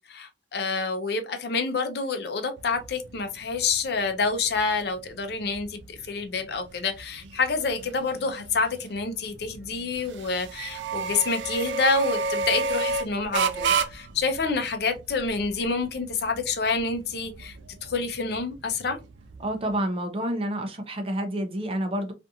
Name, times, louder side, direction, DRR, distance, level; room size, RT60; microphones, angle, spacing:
voice 1, 0.1-17.6 17.8-19.0, left 4 dB, 60° left, 0.5 m, -28 dB
sound 1, 2.6-19.8, right 4 dB, 85° right, 0.4 m, -33 dB
voice 2, 19.4-22.1, right 1 dB, 35° right, 0.5 m, -29 dB
2.5 x 2.4 x 2.7 m
head